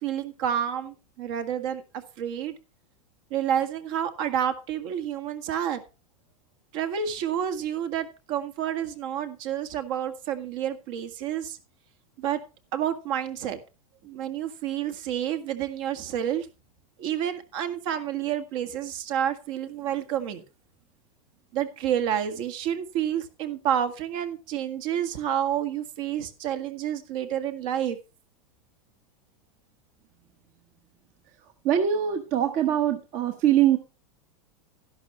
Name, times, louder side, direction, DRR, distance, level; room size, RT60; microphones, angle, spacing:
voice 1, 0.0-1.8 2.2-2.6 3.3-5.8 6.7-11.6 12.2-12.4 12.7-13.6 14.0-16.5 17.0-20.4 21.5-28.0, right 9 dB, 55° right, 8 dB, 1.9 m, -29 dB
voice 2, 31.6-33.8, right 10 dB, 40° right, 6 dB, 1.3 m, -22 dB
12.5 x 11.0 x 3.1 m, 0.30 s
supercardioid pair, 140°, 19 cm